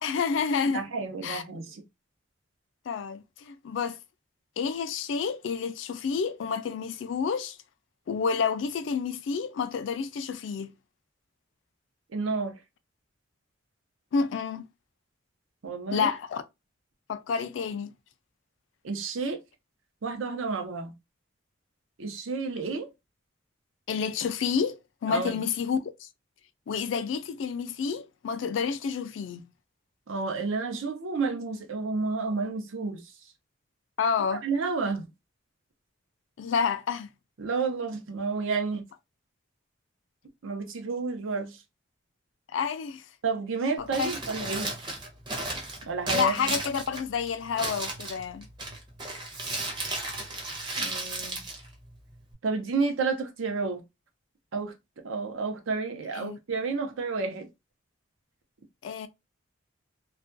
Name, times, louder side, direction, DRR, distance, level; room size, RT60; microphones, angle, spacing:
voice 1, 0.0-0.8 1.2-1.4 2.9-4.0 4.6-7.6 8.1-10.7 14.1-14.7 15.9-16.4 17.1-17.9 23.9-26.1 26.7-29.4 34.0-34.4 36.4-37.1 42.5-43.0 43.8-44.1 46.1-48.5 56.1-56.4 58.8-59.1, left 6 dB, 70° left, 0.3 m, -29 dB
voice 2, 0.7-1.8 12.1-12.5 15.6-16.1 18.8-19.4 20.0-20.9 22.0-22.9 25.1-25.4 30.1-33.0 34.4-35.1 37.4-38.8 40.4-41.6 43.2-44.7 45.9-46.3 50.8-51.4 52.4-53.8 54.5-54.7 55.0-57.5, right 4 dB, 80° right, 0.6 m, -30 dB
Crumpling crinkling, 43.8-52.3, right 2 dB, 25° right, 0.6 m, -35 dB
2.3 x 2.2 x 2.5 m
head